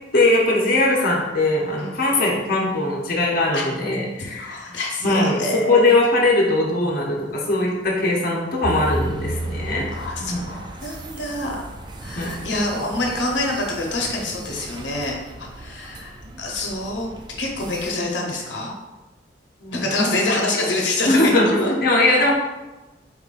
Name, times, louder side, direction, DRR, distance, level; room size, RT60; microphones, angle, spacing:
voice 1, 0.1-4.7 5.0-9.9 10.2-10.5 12.2-12.4 19.6-20.1 21.1-22.3, left 2 dB, 55° left, -2 dB, 0.7 m, -20 dB
voice 2, 1.8-2.1 3.5-3.6 4.2-5.9 9.9-11.6 12.0-16.1 16.4-17.1 17.4-18.7 19.7-21.2 21.6-21.7, left 2 dB, 90° left, -1 dB, 0.8 m, -26 dB
sound 1, 8.6-17.9, right 2 dB, 25° right, 0.4 m, -34 dB
4.2 x 3.7 x 2.4 m, 1.1 s
head